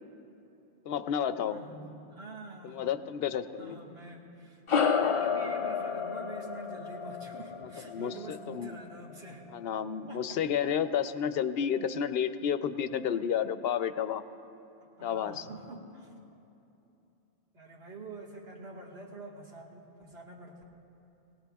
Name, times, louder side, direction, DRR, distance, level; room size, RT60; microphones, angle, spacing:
voice 1, 0.9-1.6 2.6-3.8 7.9-8.8 9.5-14.2 15.0-15.5, left 8 dB, 75° left, 11 dB, 0.8 m, -31 dB
voice 2, 1.4-2.9 3.6-4.6 5.1-9.4 10.1-10.4 15.0-16.1 17.5-20.7, right 2 dB, 90° right, -2 dB, 1.9 m, -46 dB
sound 1, 4.7-9.4, left 6 dB, 50° left, 0.4 m, -31 dB
21.0 x 17.5 x 2.3 m, 2.8 s
omnidirectional pair, 1.0 m